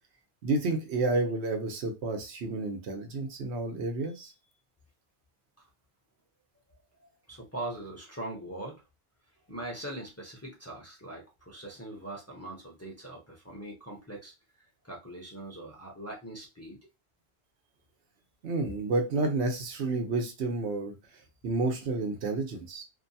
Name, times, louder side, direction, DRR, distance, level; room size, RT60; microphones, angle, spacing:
voice 1, 0.4-4.3 18.4-20.9 21.4-22.8, right 3 dB, 85° right, 4 dB, 1.0 m, -30 dB
voice 2, 3.0-3.3 5.6-5.7 6.7-8.8 9.5-14.3 14.8-16.8, right 1 dB, 20° left, -2 dB, 0.6 m, -42 dB
2.6 x 2.2 x 2.6 m, 0.26 s
omnidirectional pair, 1.1 m